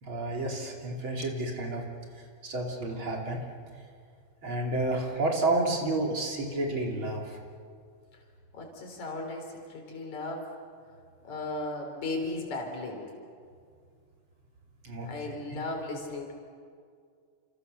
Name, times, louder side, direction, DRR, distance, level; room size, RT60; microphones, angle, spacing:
voice 1, 0.0-1.8 2.4-3.4 4.4-7.3 14.8-15.4, right 2 dB, 40° right, 0 dB, 3.6 m, -30 dB
voice 2, 8.5-10.5 11.2-13.1 15.0-16.3, left 2 dB, 70° left, 1 dB, 5.1 m, -36 dB
29.5 x 28.0 x 6.8 m, 2.2 s
omnidirectional pair, 3.4 m